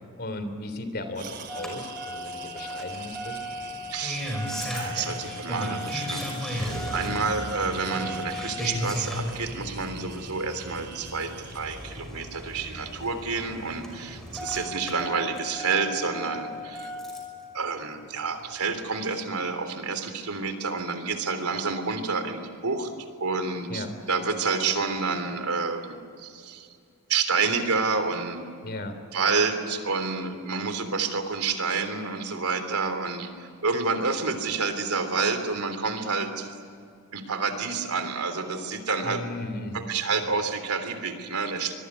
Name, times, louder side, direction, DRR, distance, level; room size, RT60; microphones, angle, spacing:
voice 1, 0.2-3.4 7.0-7.4 23.7-23.9 28.6-29.0 39.0-40.0, left 1 dB, 45° left, 9 dB, 3.5 m, -36 dB
sound 1, 1.1-12.0, right 7 dB, 50° right, 3.0 m, -44 dB
Engine starting, 1.5-17.4 18.7-18.8, left 1 dB, ahead, 5.6 m, -35 dB
voice 2, 3.9-4.3 4.6-16.9 17.5-22.9 23.2-26.7 27.1-28.4 29.1-36.5 37.1-39.2 39.7-41.7, right 4 dB, 85° right, 8 dB, 3.3 m, -29 dB
25.0 x 22.0 x 9.8 m, 2.4 s
head